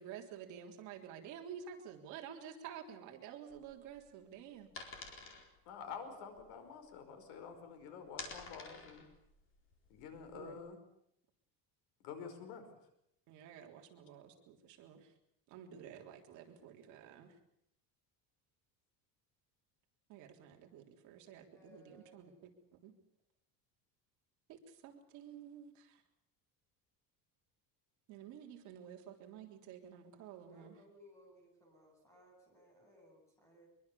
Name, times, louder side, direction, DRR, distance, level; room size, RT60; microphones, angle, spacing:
voice 1, 0.0-4.7 10.3-10.6 13.3-15.1 15.5-17.3 20.1-22.5 22.8-22.9 24.5-26.0 28.1-30.8, right 8 dB, 50° right, 2 dB, 3.6 m, -51 dB
sound 1, 3.5-7.5 7.8-10.5, left 4 dB, 35° left, 4.3 m, -51 dB
voice 2, 5.7-9.0 9.9-10.8 12.0-12.6, left 6 dB, 75° left, 7 dB, 5.3 m, -48 dB
voice 3, 21.5-22.3 30.4-33.7, left 1 dB, 10° left, 0 dB, 7.9 m, -62 dB
24.0 x 23.0 x 7.1 m, 0.76 s
cardioid pair, 180°, 36 cm